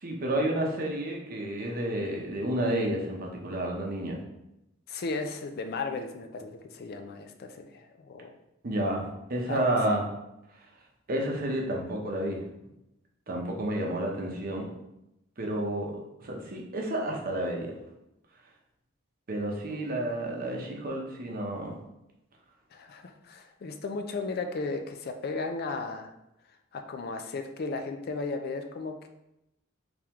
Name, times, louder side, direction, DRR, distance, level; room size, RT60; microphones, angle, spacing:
voice 1, 0.0-4.2 8.6-10.0 11.1-12.4 13.3-14.7 15.4-15.9 16.2-17.7 19.3-21.7, right 1 dB, 45° right, 0 dB, 0.7 m, -30 dB
voice 2, 4.9-8.4 9.5-9.8 19.7-20.1 22.7-26.1 26.7-29.1, left 3 dB, 50° left, 6 dB, 0.4 m, -35 dB
3.5 x 3.4 x 3.0 m, 0.87 s
head